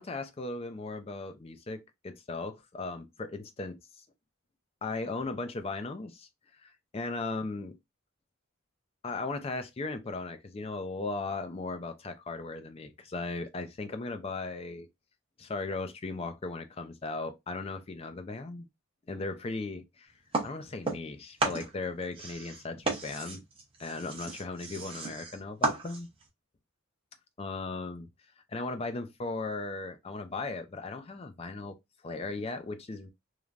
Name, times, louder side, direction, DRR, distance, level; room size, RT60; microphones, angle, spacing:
voice 1, 0.0-4.0 4.8-6.3 6.6-7.7 9.0-14.9 15.4-18.7 19.1-20.1 20.4-23.4 23.8-26.1 27.4-28.1 28.5-31.8 32.0-33.1, left 3 dB, 25° left, 0.4 m, -37 dB
sound 1, 20.3-21.1 21.4-26.3, right 3 dB, 25° right, 0.7 m, -34 dB
3.1 x 2.2 x 2.4 m
head